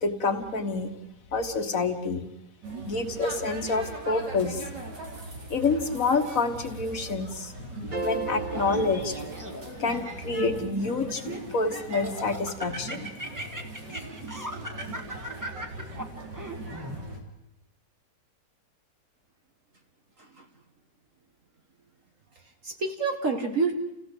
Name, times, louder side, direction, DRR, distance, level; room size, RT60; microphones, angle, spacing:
voice 1, 0.0-0.9 1.3-2.2 2.9-4.7 5.5-9.3 9.5-11.2 11.5-13.1, left 3 dB, 50° left, 7 dB, 1.9 m, -28 dB
sound 1, 2.6-17.2, right 2 dB, 75° right, 3.7 m, -40 dB
sound 2, 7.9-10.2, right 4 dB, 30° right, 1.6 m, -36 dB
Laughter, 8.5-9.8 10.4-11.5 11.9-17.0, right 1 dB, 10° right, 1.8 m, -38 dB
voice 2, 22.4-23.7, right 4 dB, 50° right, 3 dB, 1.9 m, -29 dB
29.5 x 16.5 x 8.0 m, 0.92 s
omnidirectional pair, 1.9 m